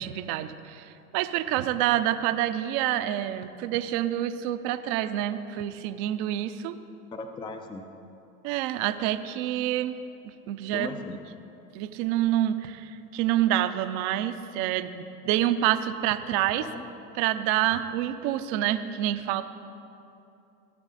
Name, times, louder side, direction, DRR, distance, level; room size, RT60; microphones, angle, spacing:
voice 1, 0.0-6.8 8.4-10.0 10.2-10.9 11.7-16.6 17.2-19.4, right 12 dB, 45° right, 10 dB, 0.7 m, -27 dB
voice 2, 7.1-7.8 10.7-11.2 16.6-16.8, left 3 dB, 10° left, 6 dB, 0.5 m, -37 dB
17.5 x 6.1 x 4.1 m, 2.7 s
hypercardioid pair, 100°, 44 cm